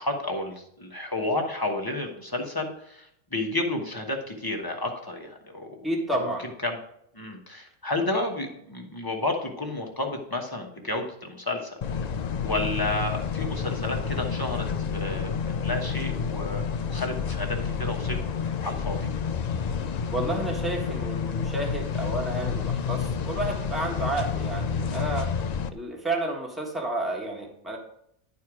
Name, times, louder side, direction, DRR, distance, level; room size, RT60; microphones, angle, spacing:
voice 1, 0.0-5.9 6.1-6.3 6.6-6.8 7.1-11.8 12.4-18.2 18.6-19.1, left 2 dB, 20° left, 1 dB, 1.1 m, -31 dB
voice 2, 5.8-6.5 20.1-25.3 25.7-27.8, right 1 dB, ahead, 0 dB, 1.5 m, -31 dB
sound 1, 11.8-25.7, left 6 dB, 80° left, 0.3 m, -29 dB
11.0 x 4.6 x 4.8 m, 0.73 s
omnidirectional pair, 1.4 m